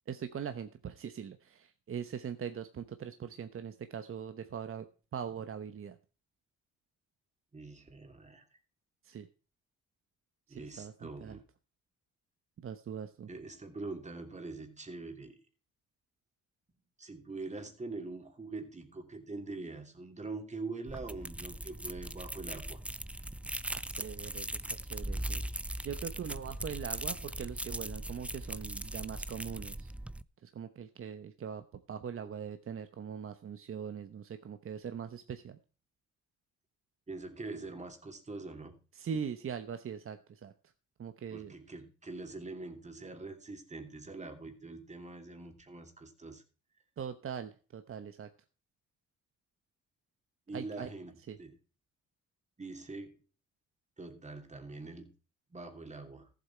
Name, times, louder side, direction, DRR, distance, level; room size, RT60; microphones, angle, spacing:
voice 1, 0.1-4.9 5.1-6.0 9.0-9.3 10.5-11.4 12.6-13.3 23.9-24.6 24.9-25.4 25.8-29.9 30.4-35.6 39.0-40.5 41.0-41.5 47.0-48.3 50.5-50.9 51.3-51.4, right 7 dB, 45° right, 9 dB, 1.0 m, -41 dB
voice 2, 7.5-8.5 10.5-11.4 13.3-15.4 17.0-22.8 37.1-38.8 41.3-46.4 50.5-51.6 52.6-53.2 54.0-55.1 55.5-56.3, right 3 dB, 25° right, 5 dB, 2.8 m, -44 dB
sound 1, 20.9-30.2, right 1 dB, 5° right, 0.5 m, -39 dB
14.0 x 8.0 x 4.5 m, 0.36 s
cardioid pair, 90°, 30 cm